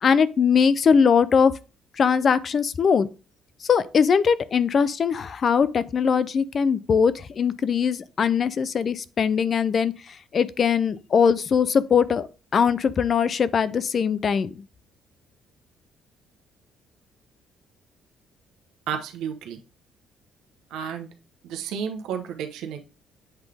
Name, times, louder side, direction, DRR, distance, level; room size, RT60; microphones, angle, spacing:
voice 1, 0.0-1.5 2.0-3.1 3.7-9.9 10.3-12.3 12.5-14.5, left 6 dB, 35° left, 0.4 m, -21 dB
voice 2, 18.9-19.6 20.7-21.1 21.4-22.8, right 7 dB, 80° right, 0.9 m, -32 dB
8.0 x 3.9 x 3.4 m
cardioid pair, 150°, 0 cm